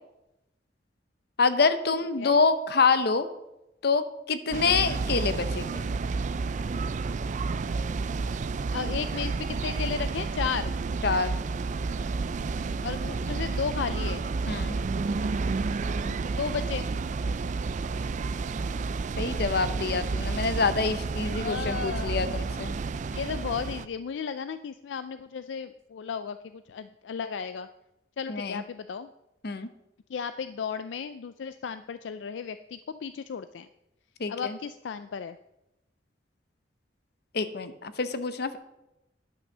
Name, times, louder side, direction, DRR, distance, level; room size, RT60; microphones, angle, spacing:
voice 1, 1.4-3.3 3.8-5.9 11.0-11.3 14.5-14.8 16.0-16.2 19.2-22.7 28.3-28.6 29.4-29.7 34.2-34.6 37.3-38.6, left 4 dB, 60° left, 11 dB, 0.8 m, -26 dB
sound 1, 4.5-23.9, right 4 dB, 40° right, 0.4 m, -30 dB
voice 2, 8.7-10.7 12.8-14.2 16.2-16.9 21.4-22.2 23.1-27.7 28.2-29.1 30.1-33.7 34.3-35.4, left 6 dB, 80° left, 12 dB, 0.4 m, -34 dB
10.5 x 6.1 x 6.6 m, 0.90 s
head